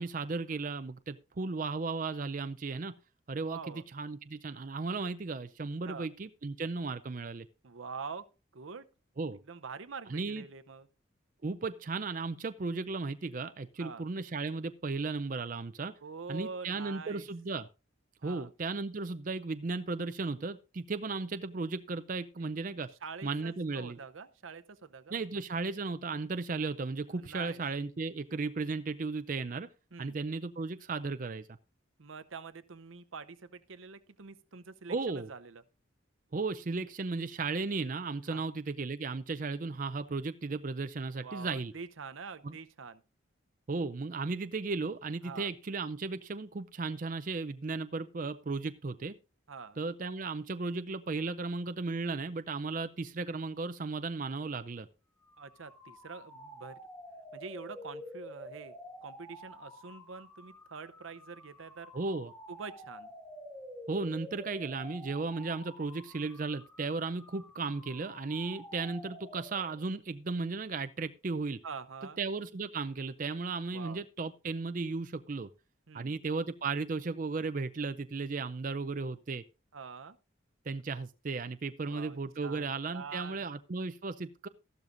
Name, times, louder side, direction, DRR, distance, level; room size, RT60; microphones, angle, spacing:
voice 1, 0.0-2.9 3.3-7.5 9.2-9.4 10.1-10.4 11.4-15.9 16.3-17.7 18.2-22.9 23.2-24.0 25.1-29.7 30.0-31.4 34.9-35.3 36.3-41.7 42.4-42.5 43.7-49.1 49.8-54.9 61.9-62.3 63.9-71.6 72.2-75.5 75.9-79.4 80.7-84.5, right 3 dB, 40° right, 0.5 m, -35 dB
voice 2, 3.5-3.8 5.9-6.1 7.6-8.3 8.5-8.9 9.5-10.9 13.8-14.0 16.0-17.3 18.2-18.5 23.0-25.2 27.1-27.6 29.9-30.2 32.0-35.6 38.2-38.4 41.2-43.0 45.2-45.5 49.5-49.8 55.4-56.8 57.3-58.7 59.0-61.9 62.5-63.1 71.6-72.2 73.7-74.0 75.9-76.2 79.7-80.2 81.9-83.5, right 5 dB, 80° right, 0.7 m, -45 dB
sound 1, 55.2-69.9, equal, 15° left, 3.2 m, -49 dB
13.5 x 12.0 x 2.6 m
head